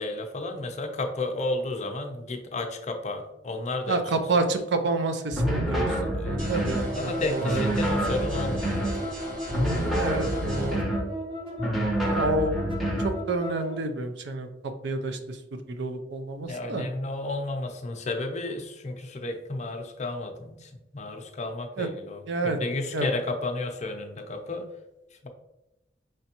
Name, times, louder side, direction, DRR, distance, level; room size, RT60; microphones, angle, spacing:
voice 1, 0.0-4.0 5.8-6.4 6.9-9.0 16.5-24.7, left 2 dB, 40° left, 5 dB, 0.6 m, -32 dB
voice 2, 3.9-5.9 6.2-7.8 9.9-10.8 12.0-12.5 13.0-14.5 14.8-15.2 15.7-16.9 21.8-21.9 22.3-22.6 22.9-23.1, right 2 dB, 70° right, 7 dB, 0.5 m, -28 dB
sound 1, 5.3-6.9 7.4-9.0 9.5-11.1 11.6-13.2, equal, ahead, 0.7 m, -27 dB
sound 2, 5.5-13.8, equal, 30° right, 1.0 m, -36 dB
sound 3, 6.4-10.8, equal, 45° right, 1.3 m, -39 dB
5.1 x 3.3 x 2.9 m, 0.93 s
head